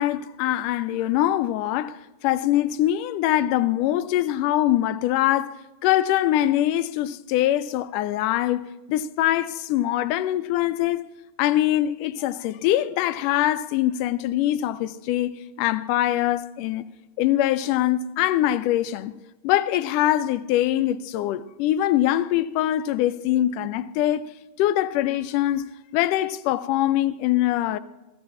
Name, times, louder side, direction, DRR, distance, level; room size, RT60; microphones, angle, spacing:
voice 1, 0.0-8.6 8.9-11.0 11.4-15.3 15.6-16.9 17.2-19.2 19.4-24.3 24.6-27.8, left 13 dB, 45° left, 0.5 m, -23 dB
18.0 x 14.5 x 2.4 m
figure-of-eight pair, 90°, 0 cm